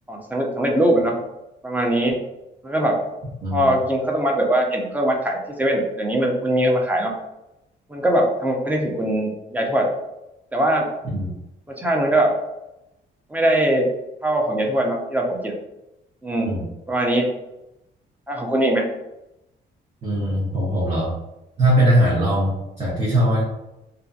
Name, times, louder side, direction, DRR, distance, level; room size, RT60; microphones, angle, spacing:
voice 1, 0.1-1.2 1.6-2.2 2.6-3.0 3.5-7.1 7.9-9.9 10.5-10.9 11.7-12.3 13.3-13.9 14.2-15.5 16.2-16.5 16.9-17.3 18.3-18.8, right 1 dB, 10° right, 0 dB, 0.6 m, -21 dB
voice 2, 20.0-21.1 21.6-23.4, right 1 dB, 35° right, -6 dB, 0.9 m, -20 dB
2.7 x 2.5 x 2.4 m, 0.92 s
cardioid pair, 90°, 20 cm